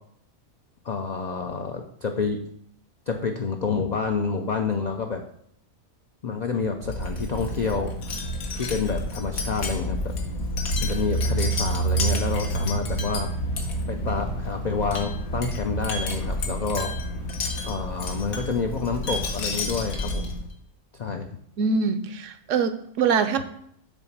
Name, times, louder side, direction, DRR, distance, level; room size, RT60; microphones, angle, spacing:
voice 1, 0.8-2.4 3.1-5.2 6.2-8.2 8.5-10.1 10.8-13.3 13.9-16.9 17.6-20.3 20.9-21.4, left 5 dB, 70° left, 4 dB, 0.4 m, -28 dB
Wind chime, 6.8-20.5, right 1 dB, 85° left, 1.5 m, -29 dB
voice 2, 21.6-23.4, right 5 dB, 70° right, 10 dB, 0.9 m, -24 dB
6.9 x 4.0 x 5.8 m, 0.69 s
omnidirectional pair, 1.4 m